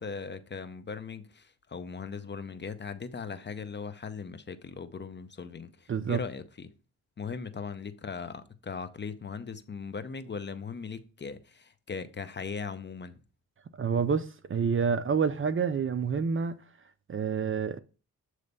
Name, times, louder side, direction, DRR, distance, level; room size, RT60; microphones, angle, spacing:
voice 1, 0.0-6.7 7.2-13.2, left 5 dB, 30° left, 0.6 m, -39 dB
voice 2, 5.9-6.2 13.8-16.6 17.1-17.8, right 6 dB, 35° right, 0.5 m, -28 dB
7.9 x 3.2 x 5.3 m
cardioid pair, 100°, 35 cm